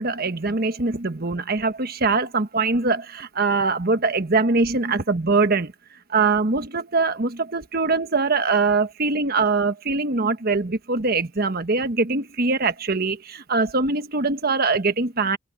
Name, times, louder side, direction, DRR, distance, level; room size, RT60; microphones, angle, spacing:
voice 1, 0.0-5.7 6.1-15.4, right 3 dB, 50° right, 1.3 m, -22 dB
open air
head